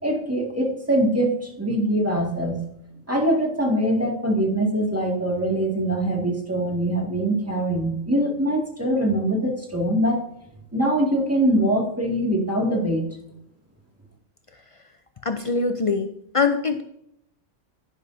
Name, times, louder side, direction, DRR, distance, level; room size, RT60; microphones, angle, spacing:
voice 1, 0.0-2.6 3.1-10.2 10.7-13.1, right 1 dB, 10° right, -1 dB, 2.1 m, -23 dB
voice 2, 15.2-16.8, left 4 dB, 60° left, 8 dB, 0.3 m, -23 dB
10.5 x 10.5 x 2.7 m, 0.76 s
omnidirectional pair, 1.4 m